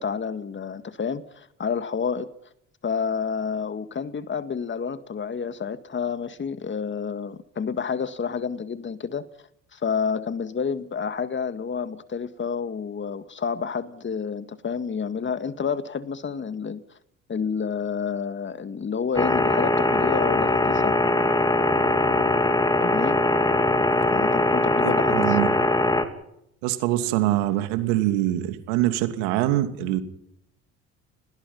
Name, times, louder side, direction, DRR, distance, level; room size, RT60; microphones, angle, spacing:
voice 1, 0.0-2.3 2.8-9.3 9.7-16.8 17.3-21.0 22.8-23.2 24.1-25.4, left 6 dB, 35° left, 2.0 m, -29 dB
sound 1, 19.1-26.0, left 2 dB, 10° left, 3.1 m, -21 dB
voice 2, 24.8-25.5 26.6-30.0, right 14 dB, 80° right, 2.8 m, -24 dB
29.5 x 21.0 x 5.6 m
hypercardioid pair, 70°, 34 cm